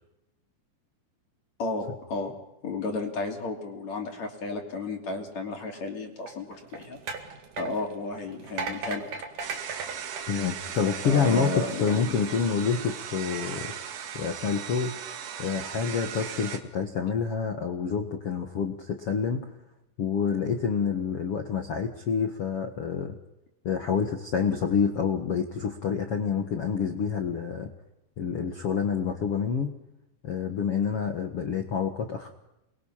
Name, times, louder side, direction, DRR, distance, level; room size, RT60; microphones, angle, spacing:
voice 1, 1.6-2.3 2.6-7.0 7.6-9.1 11.0-12.2, left 3 dB, 40° left, 2 dB, 3.8 m, -33 dB
sound 1, 6.2-11.1 11.7-11.9, right 5 dB, 50° right, 3.1 m, -37 dB
sound 2, 9.4-16.6, right 8 dB, 80° right, 4.4 m, -38 dB
voice 2, 10.3-13.7 14.1-15.0 15.4-19.5 20.0-23.2 23.6-27.7 28.2-29.7 30.2-32.3, left 6 dB, 70° left, 4 dB, 1.4 m, -28 dB
29.0 x 22.5 x 5.8 m, 0.89 s
omnidirectional pair, 5.2 m